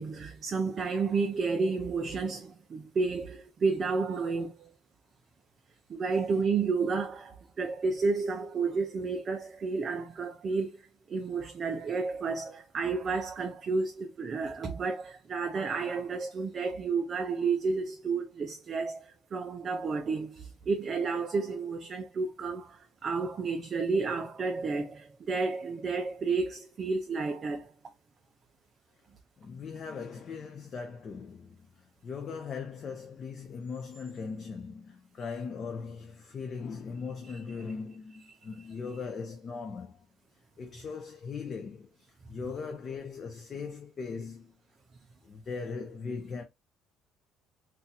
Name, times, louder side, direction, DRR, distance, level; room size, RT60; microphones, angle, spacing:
voice 1, 0.0-4.7 5.9-27.7, right 4 dB, 30° right, 0.4 m, -31 dB
voice 2, 29.4-40.0 40.6-44.5 45.2-46.4, left 5 dB, 30° left, 0.5 m, -39 dB
2.6 x 2.3 x 4.0 m
cardioid pair, 170°, 0 cm